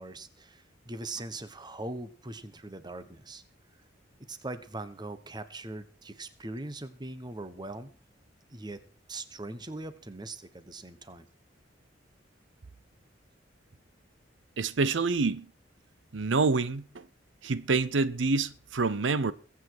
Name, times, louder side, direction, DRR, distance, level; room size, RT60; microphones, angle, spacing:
voice 1, 0.0-3.4 4.3-7.9 8.5-8.8 9.1-11.2, right 2 dB, 25° right, 1.2 m, -41 dB
voice 2, 14.6-15.4 16.1-16.8 17.4-19.3, right 4 dB, 90° right, 0.7 m, -27 dB
22.0 x 8.4 x 4.7 m
head